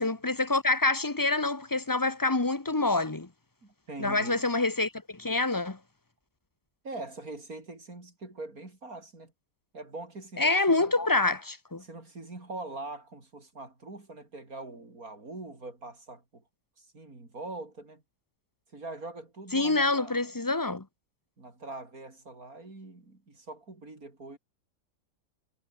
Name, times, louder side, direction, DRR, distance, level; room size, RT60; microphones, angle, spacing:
voice 1, 0.0-3.3 4.0-5.8 10.4-11.8 19.5-20.8, left 2 dB, 15° left, 0.9 m, -26 dB
voice 2, 3.6-4.4 6.8-9.3 9.7-10.9 11.8-16.4 16.8-18.0 18.7-20.3 21.4-24.4, right 2 dB, 55° right, 5.3 m, -43 dB
omnidirectional pair, 1.8 m